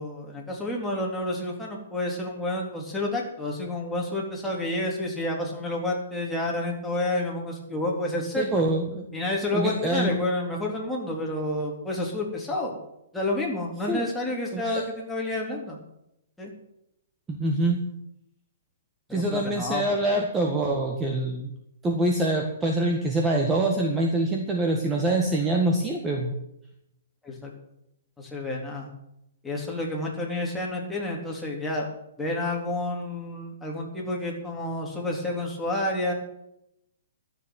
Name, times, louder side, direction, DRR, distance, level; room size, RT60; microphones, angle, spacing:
voice 1, 0.0-8.6 9.1-12.8 13.1-15.8 16.4-16.5 19.1-20.0 27.2-27.5 28.2-28.9 29.4-31.9 32.2-36.1, left 1 dB, 5° left, -2 dB, 3.6 m, -29 dB
voice 2, 8.4-9.1 9.5-10.1 13.9-14.1 14.5-14.8 17.3-17.8 19.1-21.5 21.8-26.3, right 2 dB, 15° right, 1 dB, 1.8 m, -25 dB
13.0 x 7.3 x 9.5 m, 0.82 s
hypercardioid pair, 140°, 0 cm